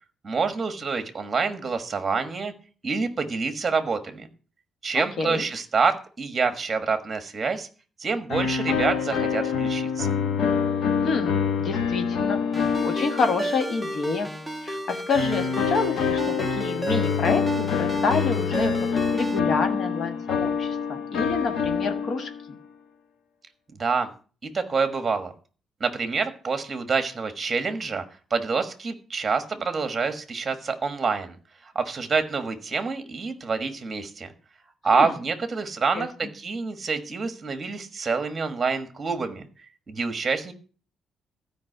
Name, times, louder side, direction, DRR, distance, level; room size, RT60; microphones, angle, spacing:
voice 1, 0.2-2.5 2.8-4.3 4.8-7.7 8.0-10.1 23.8-24.1 24.4-25.3 25.8-28.0 28.3-31.4 31.6-34.3 34.8-39.4 39.9-40.5, right 4 dB, 25° right, 9 dB, 1.4 m, -27 dB
voice 2, 4.9-5.4 11.0-12.4 12.8-14.3 14.6-22.6 34.9-35.1 35.9-36.1, left 4 dB, 45° left, 7 dB, 1.4 m, -28 dB
sound 1, 8.3-14.1 15.1-22.5, left 6 dB, 70° left, 1.1 m, -26 dB
Ringtone, 12.5-19.4, right 1 dB, ahead, 0.7 m, -33 dB
13.0 x 5.2 x 7.8 m, 0.38 s
cardioid pair, 175°, 0 cm